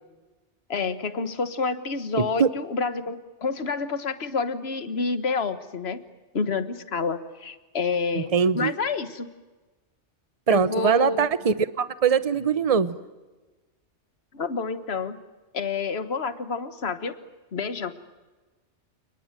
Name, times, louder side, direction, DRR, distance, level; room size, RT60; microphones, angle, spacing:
voice 1, 0.7-6.0 6.3-9.3 10.5-11.3 14.3-15.2 15.5-17.1 17.5-17.9, left 4 dB, 60° left, 11 dB, 1.7 m, -28 dB
voice 2, 2.2-2.5 8.1-8.7 10.5-13.0, right 6 dB, 30° right, 14 dB, 0.9 m, -22 dB
30.0 x 19.5 x 9.1 m, 1.2 s
omnidirectional pair, 1.2 m